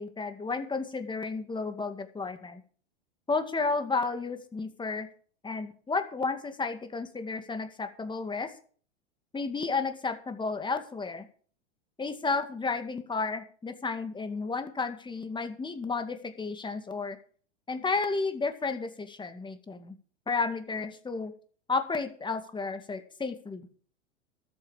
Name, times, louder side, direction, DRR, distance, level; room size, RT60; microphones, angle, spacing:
voice 1, 0.0-2.6 3.3-5.1 5.4-8.5 9.3-11.3 12.0-17.2 17.7-20.0 20.3-21.3 21.7-23.7, left 4 dB, 15° left, 8 dB, 2.2 m, -32 dB
13.5 x 8.9 x 6.4 m, 0.44 s
hypercardioid pair, 105°, 35 cm